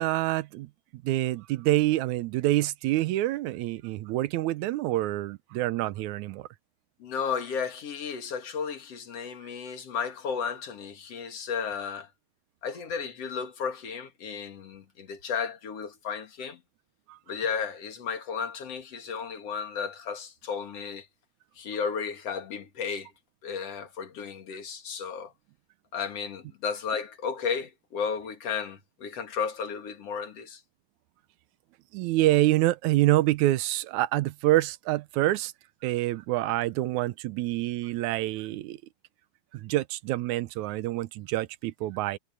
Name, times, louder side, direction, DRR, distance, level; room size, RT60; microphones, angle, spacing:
voice 1, 0.0-6.5 31.9-35.5 35.8-38.8 39.5-42.2, right 16 dB, 75° right, 2.0 m, -26 dB
voice 2, 7.0-12.1 12.6-16.6 17.3-21.1 21.6-23.1 23.4-25.3 25.9-30.6, left 6 dB, 55° left, 2.9 m, -33 dB
omnidirectional pair, 3.6 m